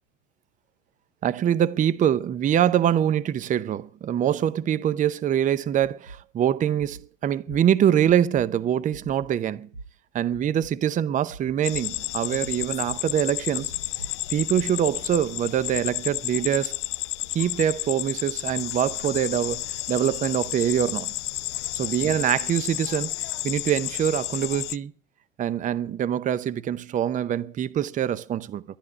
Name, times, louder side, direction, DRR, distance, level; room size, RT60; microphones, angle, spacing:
voice 1, 1.2-9.7 10.1-13.7 14.3-16.7 17.3-21.1 21.7-23.1 23.4-24.9 25.4-28.6, right 10 dB, 20° right, 0.7 m, -24 dB
sound 1, 6.1-6.2 6.8-7.0 7.5-7.6 8.0-8.4 8.9-9.3 9.7-9.8 10.3-10.7 11.3-11.8 12.3-12.9 13.6-14.6, right 3 dB, 85° right, 7.1 m, -42 dB
sound 2, 11.6-24.8, left 17 dB, 65° left, 0.7 m, -31 dB
12.0 x 11.0 x 9.8 m
hypercardioid pair, 110°, 38 cm